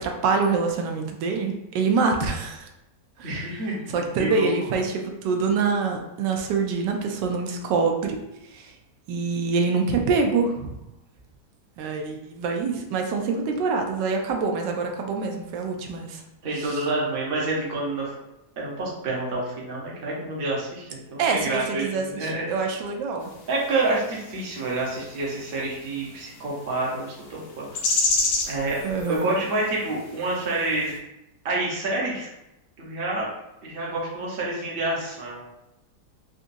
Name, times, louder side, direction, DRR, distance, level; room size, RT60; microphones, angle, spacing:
voice 1, 0.0-2.7 3.2-3.4 3.9-8.2 8.5-8.7 9.1-10.7 11.8-16.2 21.2-23.3 28.8-29.3, right 4 dB, 90° right, 3 dB, 1.2 m, -25 dB
voice 2, 3.2-4.5 16.4-18.1 18.6-22.5 23.5-27.8 28.5-28.8 29.1-31.0 31.4-32.3 32.8-33.3 33.6-35.4, right 2 dB, 40° right, -4 dB, 0.9 m, -28 dB
sound 1, 23.2-31.0, left 3 dB, 80° left, 1.2 m, -32 dB
4.0 x 2.5 x 2.6 m, 0.89 s
omnidirectional pair, 1.8 m